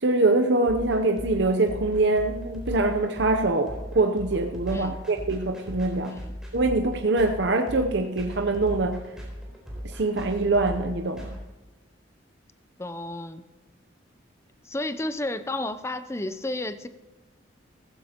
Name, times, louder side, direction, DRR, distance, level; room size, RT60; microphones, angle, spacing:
voice 1, 0.0-6.2 6.5-9.0 9.8-11.4, right 2 dB, 60° right, 0.7 m, -24 dB
sound 1, 0.7-11.4, equal, 5° right, 3.8 m, -37 dB
voice 2, 12.8-13.4 14.6-16.9, left 1 dB, 15° left, 0.5 m, -32 dB
16.0 x 15.0 x 2.9 m
head